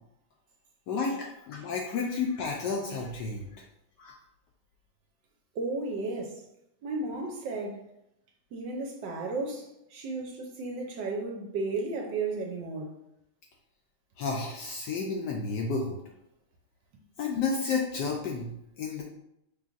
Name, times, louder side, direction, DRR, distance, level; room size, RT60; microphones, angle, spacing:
voice 1, 0.9-3.6 4.0-4.1 14.2-16.0 17.2-19.0, left 4 dB, 75° left, 1.0 m, -31 dB
voice 2, 5.5-6.4 6.8-7.9 8.5-13.0, right 3 dB, 70° right, 1.2 m, -34 dB
5.0 x 3.2 x 2.4 m
omnidirectional pair, 2.2 m